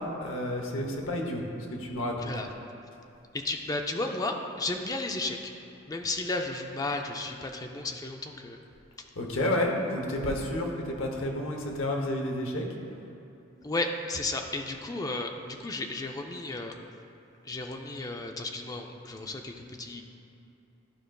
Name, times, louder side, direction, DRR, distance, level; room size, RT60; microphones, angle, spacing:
voice 1, 0.2-1.4 1.8-2.3 9.2-12.7, left 1 dB, 80° left, 1 dB, 0.9 m, -30 dB
voice 2, 3.3-5.5 5.9-8.6 13.6-16.7 17.4-20.0, left 2 dB, 20° left, 3 dB, 0.4 m, -33 dB
11.5 x 5.0 x 2.3 m, 2.8 s
head